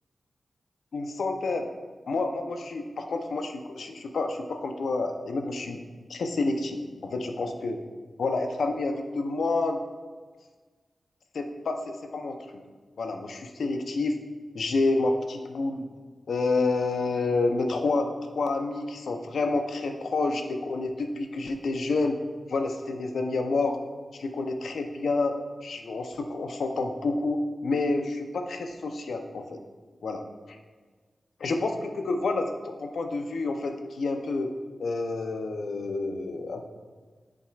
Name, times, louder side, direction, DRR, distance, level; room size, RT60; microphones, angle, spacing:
voice 1, 0.9-1.7 2.1-5.8 6.1-7.8 8.2-9.8 11.3-12.4 13.0-14.2 14.5-15.9 16.3-18.1 18.3-22.2 22.5-23.8 24.1-25.3 25.6-29.6 30.0-30.6 31.4-34.5 34.8-36.7, left 3 dB, 90° left, 5 dB, 0.6 m, -29 dB
7.7 x 7.2 x 2.4 m, 1.4 s
cardioid pair, 65°, 0 cm